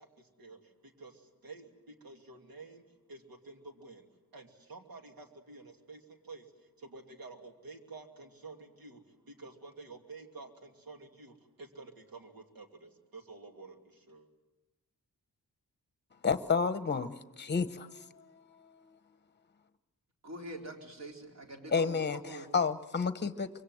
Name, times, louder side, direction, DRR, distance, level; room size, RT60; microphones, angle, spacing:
voice 1, 0.0-2.8 3.1-4.1 4.3-6.5 6.8-14.3, right 3 dB, 75° right, 4 dB, 2.8 m, -50 dB
voice 2, 16.2-18.3 21.7-23.5, left 5 dB, 30° left, 12 dB, 1.0 m, -31 dB
voice 3, 20.2-22.5, right 1 dB, 50° right, 1 dB, 4.3 m, -44 dB
25.0 x 23.5 x 7.9 m, 1.1 s
wide cardioid pair, 160°, 35 cm